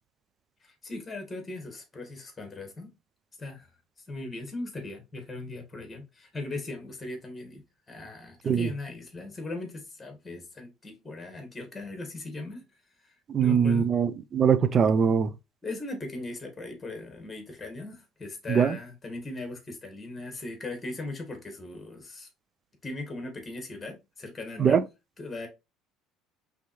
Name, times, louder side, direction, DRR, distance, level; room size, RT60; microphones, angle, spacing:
voice 1, 0.6-2.9 3.4-3.7 4.1-12.6 13.0-13.1 13.4-13.9 15.6-22.3 22.8-24.8 25.2-25.5, left 2 dB, 15° left, 1.6 m, -39 dB
voice 2, 13.3-15.3 18.5-18.8 24.6-24.8, right 7 dB, 30° right, 0.4 m, -22 dB
5.1 x 3.4 x 3.1 m
cardioid pair, 140°, 0 cm